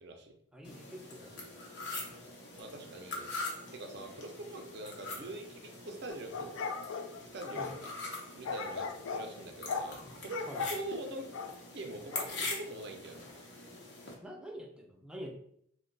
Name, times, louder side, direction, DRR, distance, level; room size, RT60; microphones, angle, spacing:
voice 1, 0.0-0.3 2.5-3.3 3.7-6.5 7.3-7.9 8.3-8.9 9.1-11.3 11.7-13.3, right 2 dB, 60° right, 4 dB, 0.5 m, -43 dB
voice 2, 0.5-1.5 7.5-7.7 10.5-10.7 14.2-15.3, equal, 5° right, 1 dB, 0.4 m, -46 dB
sound 1, 0.6-14.1, left 2 dB, 60° left, 0.7 m, -43 dB
sound 2, 6.1-7.8 8.4-9.3 9.7-9.9 10.3-10.8 11.3-11.6 12.1-12.3, left 5 dB, 90° left, 0.3 m, -37 dB
2.7 x 2.1 x 3.8 m, 0.69 s
head